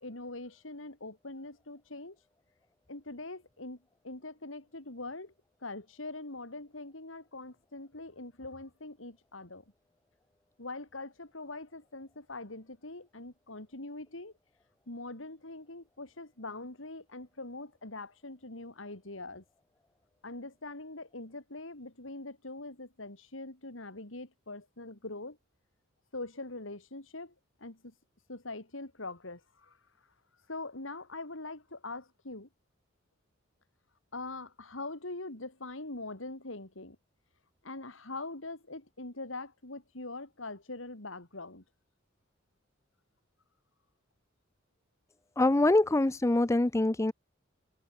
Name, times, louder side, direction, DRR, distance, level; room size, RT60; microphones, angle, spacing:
voice 1, 0.0-2.2 2.9-3.8 4.0-5.3 5.6-9.6 10.6-14.3 14.9-19.4 20.2-25.4 26.1-27.3 27.6-27.9 28.3-29.8 30.5-32.5 34.1-37.0 37.6-41.6, left 2 dB, 85° left, 3.4 m, -43 dB
voice 2, 45.4-47.1, left 2 dB, 15° left, 0.5 m, -24 dB
head